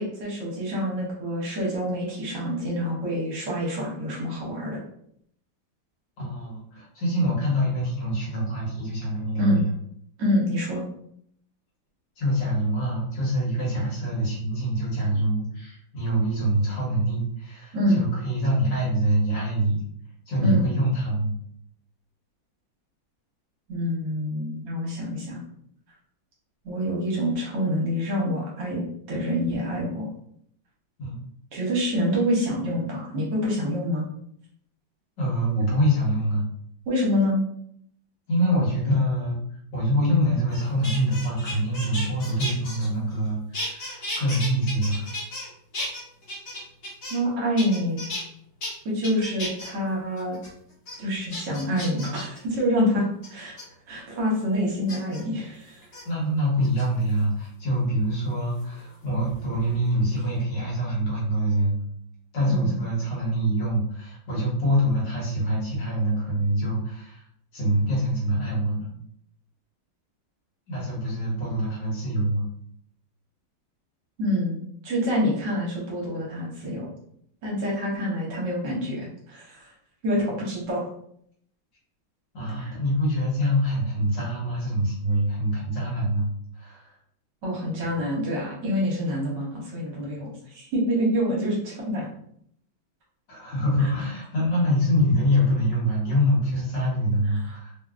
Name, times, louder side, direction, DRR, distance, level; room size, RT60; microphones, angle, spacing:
voice 1, 0.0-4.8 9.4-9.6 10.2-10.8 17.7-18.0 20.4-20.6 23.7-25.4 26.6-28.8 29.1-30.1 31.5-34.1 36.9-37.4 47.1-48.0 48.8-50.4 51.0-53.5 53.9-55.8 62.5-62.8 74.2-76.9 77.4-79.7 80.0-80.9 82.6-82.7 87.4-92.1 93.8-93.9 97.4-97.6, equal, 65° right, -3 dB, 1.4 m, -26 dB
voice 2, 6.2-9.7 12.2-19.8 20.3-21.3 31.0-31.1 35.2-36.4 38.3-39.4 39.7-45.1 56.1-61.8 62.3-67.2 67.5-68.9 70.7-72.5 82.3-86.3 86.5-86.9 93.3-97.7, equal, 60° left, -6 dB, 1.8 m, -25 dB
sound 1, 40.5-43.3 43.5-45.5 45.7-47.3 47.6-48.2 48.6-48.7 49.0-49.7 50.2-50.5 50.9-51.0 51.3-52.4 53.2-53.6 54.9-55.2 55.8-56.0 56.6-57.2 58.6-59.8 60.1-60.4, left 1 dB, 45° left, 1.4 m, -35 dB
3.6 x 2.2 x 2.4 m, 0.68 s
omnidirectional pair, 2.2 m